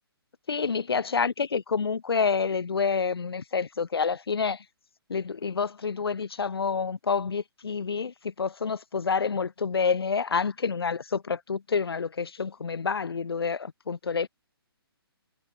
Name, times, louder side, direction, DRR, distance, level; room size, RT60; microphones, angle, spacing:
voice 1, 0.5-4.6 5.1-14.3, left 5 dB, 70° left, 0.5 m, -28 dB
figure-of-eight pair, 135°, 13 cm